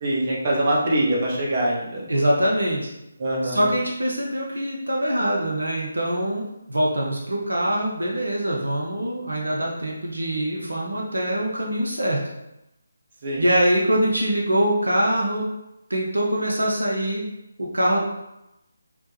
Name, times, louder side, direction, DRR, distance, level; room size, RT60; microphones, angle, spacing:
voice 1, 0.0-2.1 3.2-3.7 13.2-13.4, right 1 dB, 40° right, -4 dB, 0.7 m, -23 dB
voice 2, 2.1-2.9 3.5-12.2 13.4-15.5 15.9-17.2 17.6-18.0, right 1 dB, 75° right, -3 dB, 0.6 m, -23 dB
3.0 x 2.1 x 3.3 m, 0.90 s
figure-of-eight pair, 150°, 0 cm